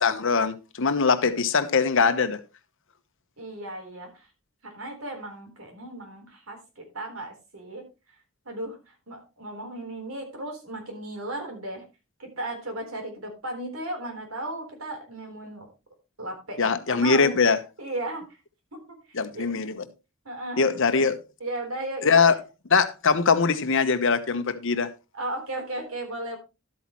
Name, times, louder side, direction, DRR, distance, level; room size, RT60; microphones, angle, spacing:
voice 1, 0.0-2.4 16.6-17.6 19.1-19.8 20.6-21.2 22.0-22.3 22.7-24.9, left 5 dB, 65° left, 1.0 m, -22 dB
voice 2, 3.4-4.3 4.6-7.8 8.5-11.8 12.2-15.7 16.2-17.3 17.8-18.2 18.7-19.6 20.3-20.7 21.4-22.4 25.1-26.4, right 1 dB, 80° right, 3.8 m, -35 dB
12.5 x 8.4 x 3.0 m
head